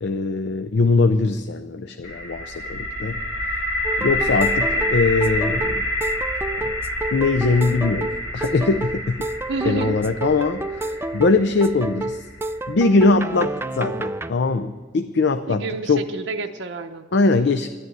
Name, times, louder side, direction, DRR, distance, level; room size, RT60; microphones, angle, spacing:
voice 1, 0.0-3.2 4.0-5.9 6.6-6.7 7.1-9.1 9.6-12.2 12.7-16.0 17.1-17.7, left 3 dB, 65° left, 8 dB, 0.5 m, -21 dB
sound 1, 2.0-13.9, left 1 dB, 85° left, 2.0 m, -28 dB
sound 2, 3.8-14.3, right 1 dB, 15° right, 0.4 m, -29 dB
voice 2, 9.5-10.0 15.5-17.1, right 3 dB, 70° right, 5 dB, 0.7 m, -29 dB
11.0 x 11.0 x 8.0 m, 1.3 s
head